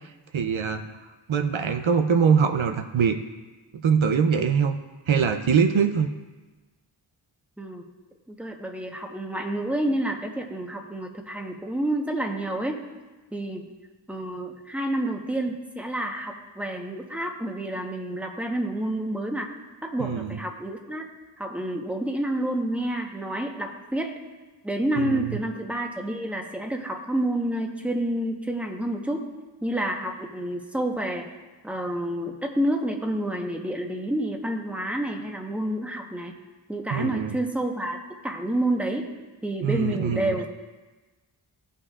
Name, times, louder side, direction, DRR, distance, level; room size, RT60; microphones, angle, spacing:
voice 1, 0.3-0.9 1.3-3.2 3.8-4.8 5.1-6.1 20.0-20.4 25.0-25.3 36.9-37.4 39.6-40.4, right 6 dB, 80° right, 6 dB, 0.6 m, -23 dB
voice 2, 8.3-12.8 13.3-13.7 14.1-19.5 19.8-21.0 21.4-24.2 24.6-29.3 29.6-31.3 31.6-36.4 36.7-38.0 38.2-39.1 39.4-40.5, right 1 dB, 5° right, 2 dB, 1.0 m, -29 dB
16.5 x 5.6 x 2.4 m, 1.2 s
wide cardioid pair, 50°, 47 cm